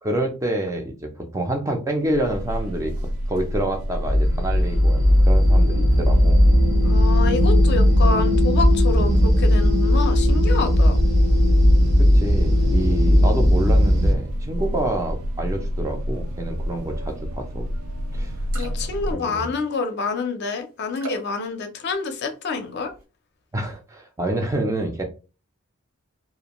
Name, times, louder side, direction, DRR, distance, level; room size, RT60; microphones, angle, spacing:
voice 1, 0.0-2.9 3.3-6.4 12.0-17.7 18.1-18.4 19.1-19.5 23.5-25.0, right 1 dB, 15° right, 3 dB, 0.4 m, -27 dB
sound 1, 2.0-19.1, equal, 90° right, 0.4 m, -29 dB
sound 2, 4.1-14.1, equal, 55° right, 0.7 m, -17 dB
voice 2, 6.8-11.0 18.5-22.9, left 4 dB, 50° left, 6 dB, 0.5 m, -27 dB
sound 3, 17.9-18.0 18.3-19.0 19.3-19.9 20.9-21.4 21.9-22.4 22.8-23.0, right 2 dB, 70° right, 1.0 m, -39 dB
2.4 x 2.2 x 2.9 m, 0.33 s
head